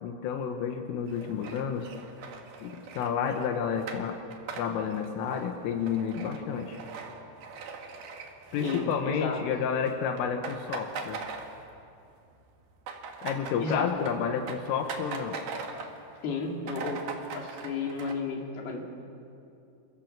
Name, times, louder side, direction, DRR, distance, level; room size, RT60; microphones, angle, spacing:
voice 1, 0.0-1.9 2.6-4.2 4.6-6.8 8.5-11.2 13.2-15.4, left 7 dB, 85° left, 4 dB, 3.9 m, -30 dB
sound 1, 1.1-9.5 9.7-9.9 10.2-12.0 12.3-16.0 16.4-16.5 16.6-18.1, right 5 dB, 60° right, 3.5 m, -41 dB
voice 2, 8.6-9.4 13.6-13.9 16.2-17.0 17.3-18.8, left 4 dB, 55° left, 0 dB, 4.7 m, -32 dB
29.5 x 26.0 x 7.4 m, 2.6 s
omnidirectional pair, 5.7 m